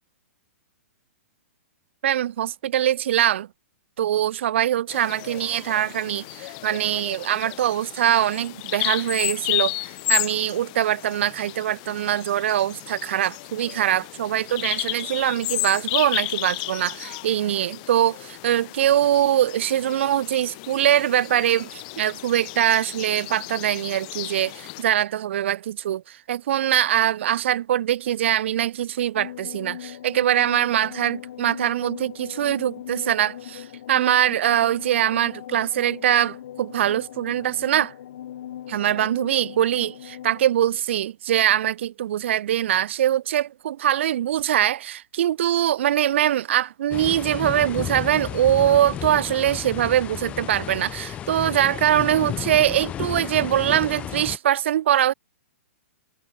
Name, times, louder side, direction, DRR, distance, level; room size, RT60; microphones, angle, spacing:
voice 1, 2.0-3.5 4.0-37.9 38.7-55.1, right 11 dB, 55° right, 1.5 m, -23 dB
Bird vocalization bird call bird song, 4.9-24.8, left 28 dB, 35° left, 2.8 m, -33 dB
sound 1, 29.1-40.5, left 11 dB, 55° left, 3.6 m, -39 dB
sound 2, 46.9-54.4, left 11 dB, 15° left, 1.5 m, -33 dB
hypercardioid pair, 165°, 8 cm